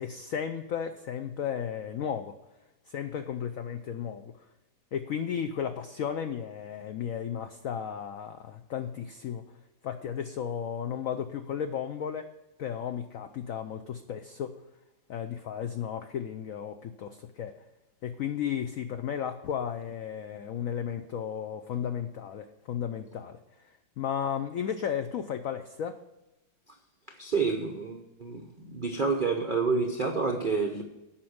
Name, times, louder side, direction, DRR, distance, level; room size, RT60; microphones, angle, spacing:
voice 1, 0.0-2.4 2.9-4.4 4.9-9.5 9.8-12.3 12.6-14.6 15.1-17.6 18.0-26.0, left 8 dB, 80° left, 0.7 m, -34 dB
voice 2, 27.2-30.8, right 4 dB, 60° right, 0.5 m, -29 dB
8.6 x 5.9 x 7.8 m
omnidirectional pair, 2.1 m